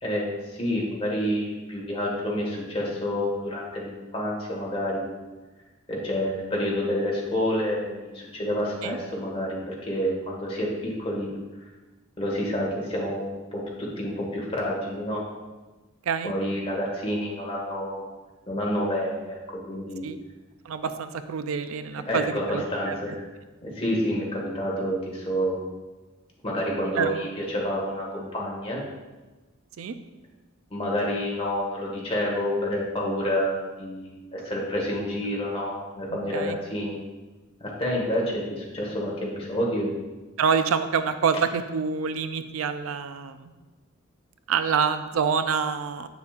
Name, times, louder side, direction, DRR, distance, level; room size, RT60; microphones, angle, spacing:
voice 1, 0.0-5.0 5.9-11.3 12.2-13.3 13.5-15.2 16.2-18.0 18.5-20.0 22.1-23.2 23.6-25.6 26.4-28.8 30.7-37.0 37.6-39.9, equal, 30° left, -3 dB, 1.7 m, -28 dB
voice 2, 20.6-22.9 27.0-27.1 29.8-30.0 36.1-36.6 40.4-43.5 44.5-46.1, right 6 dB, 80° right, 10 dB, 0.4 m, -27 dB
8.2 x 6.9 x 2.5 m, 1.2 s
head